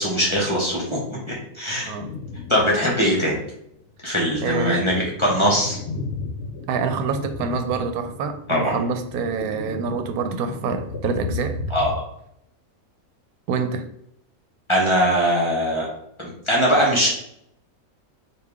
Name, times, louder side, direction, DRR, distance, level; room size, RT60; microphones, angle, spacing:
voice 1, 0.0-1.9 2.5-3.4 4.0-5.8 8.5-8.7 11.7-11.9 14.7-15.9 16.2-17.1, equal, 25° left, -4 dB, 0.9 m, -21 dB
sound 1, 2.0-2.9 3.3-3.4 4.1-12.0, left 3 dB, 65° left, 0.7 m, -34 dB
voice 2, 4.4-4.8 6.7-11.6 13.5-13.9, right 5 dB, 85° right, 7 dB, 1.1 m, -26 dB
5.0 x 2.5 x 3.5 m, 0.74 s
omnidirectional pair, 1.5 m